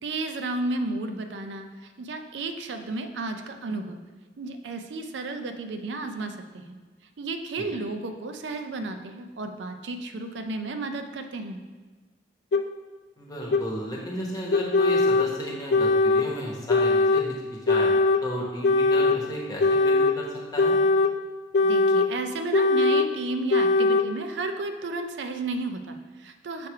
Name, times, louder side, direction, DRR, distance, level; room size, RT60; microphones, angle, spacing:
voice 1, 0.0-4.0 4.4-6.8 7.2-11.6 21.6-26.7, right 2 dB, 85° right, 7 dB, 0.5 m, -33 dB
sound 1, 12.5-12.6 13.5-13.6 14.5-15.3 15.7-16.3 16.7-17.3 17.7-18.2 18.6-19.2 19.6-20.2 20.6-21.1 21.5-22.1 22.5-23.1 23.5-24.1, left 3 dB, 65° left, 0.4 m, -20 dB
voice 2, 13.2-17.9 18.2-20.3 20.5-20.8, equal, 20° left, -3 dB, 1.1 m, -34 dB
6.7 x 3.2 x 4.6 m, 1.3 s
head